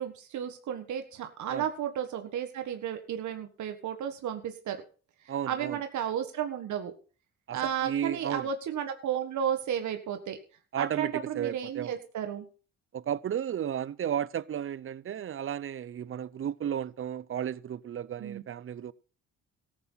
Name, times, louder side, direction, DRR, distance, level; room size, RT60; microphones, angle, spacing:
voice 1, 0.0-4.8 5.2-6.9 7.5-10.4 10.8-12.5 18.2-18.4, right 9 dB, 75° right, 1.6 m, -33 dB
voice 2, 5.3-5.8 7.5-8.5 10.7-11.1 11.4-11.9 12.9-18.9, right 9 dB, 45° right, 0.7 m, -33 dB
14.0 x 8.9 x 5.6 m
cardioid pair, 90°, 30 cm